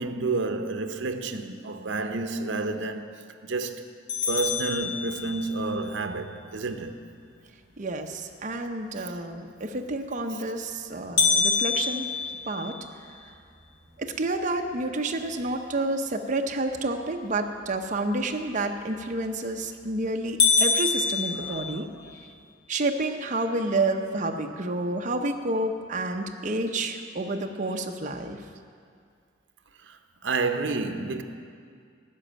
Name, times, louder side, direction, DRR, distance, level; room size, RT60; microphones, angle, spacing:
voice 1, 0.0-3.2 3.4-3.9 4.3-7.0 21.4-21.9 29.9-30.0 30.2-31.2, right 3 dB, 75° right, 0.7 m, -30 dB
sound 1, 4.1-5.7 11.2-13.3 13.8-13.9 14.4-14.5 15.2-15.5 19.1-19.5 19.9-20.0 20.4-22.1, left 4 dB, 85° left, 1.8 m, -25 dB
voice 2, 7.8-12.0 12.5-12.8 14.0-21.9 22.7-28.4, right 2 dB, 40° right, 0.7 m, -29 dB
12.0 x 6.3 x 8.9 m
head